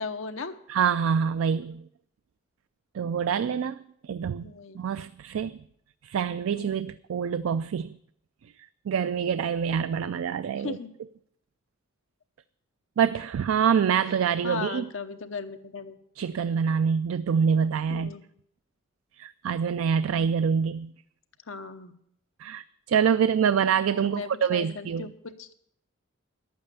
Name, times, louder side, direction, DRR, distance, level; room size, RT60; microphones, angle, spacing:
voice 1, 0.0-0.6 4.4-4.8 6.5-6.9 10.6-10.9 14.4-16.0 17.9-18.2 21.5-21.9 24.0-25.5, left 4 dB, 70° left, 0.9 m, -37 dB
voice 2, 0.7-1.8 2.9-3.8 4.0-4.5 4.7-5.6 6.0-8.0 8.9-10.8 13.0-14.9 16.2-18.1 19.2-20.9 22.4-25.1, right 7 dB, 85° right, 0.3 m, -26 dB
11.0 x 8.8 x 6.7 m
head